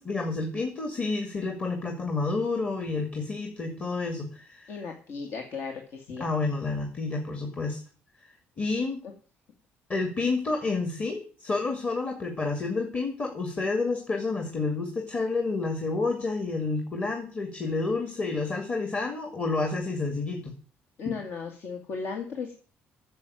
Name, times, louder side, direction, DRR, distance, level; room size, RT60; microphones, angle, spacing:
voice 1, 0.0-4.8 6.2-7.8 8.6-9.0 9.9-20.5 21.1-21.2, left 3 dB, 30° left, 3 dB, 2.4 m, -29 dB
voice 2, 4.7-6.2 21.0-22.5, left 5 dB, 60° left, 3 dB, 2.1 m, -36 dB
9.6 x 7.4 x 9.2 m, 0.40 s
cardioid pair, 120°, 5 cm